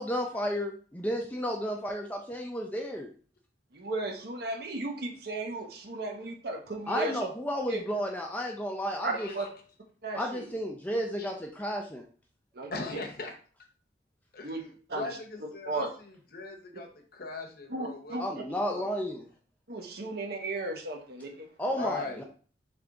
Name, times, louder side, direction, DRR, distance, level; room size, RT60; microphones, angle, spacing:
voice 1, 0.0-3.1 6.9-9.3 10.1-12.0 18.2-19.2 21.6-22.2, equal, 10° left, 1 dB, 0.4 m, -32 dB
voice 2, 3.7-7.2 7.7-7.8 9.0-9.5 10.0-10.5 12.5-12.8 14.4-14.6 14.9-15.2 15.7-15.9 17.7-18.2 19.7-21.5, right 2 dB, 55° right, 2 dB, 0.9 m, -35 dB
voice 3, 9.1-9.5 11.2-11.3 12.7-13.3 14.3-15.9 16.3-18.9 21.7-22.2, left 3 dB, 55° left, 3 dB, 0.8 m, -40 dB
3.5 x 3.4 x 3.8 m, 0.42 s
head